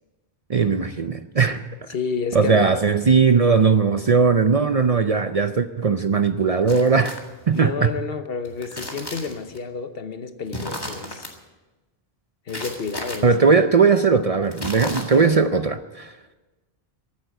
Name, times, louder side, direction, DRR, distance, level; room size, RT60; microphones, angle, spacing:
voice 1, 0.5-1.9 2.3-7.2 7.5-7.9 13.2-16.1, right 5 dB, 45° right, 0.6 m, -19 dB
voice 2, 1.9-2.8 7.5-11.3 12.5-13.3 15.1-15.4, left 4 dB, 65° left, 1.2 m, -30 dB
sound 1, 6.7-7.6 8.4-9.6 10.5-11.3 12.5-13.2 14.5-15.4, left 1 dB, 20° left, 1.9 m, -34 dB
15.0 x 9.0 x 9.0 m
omnidirectional pair, 1.1 m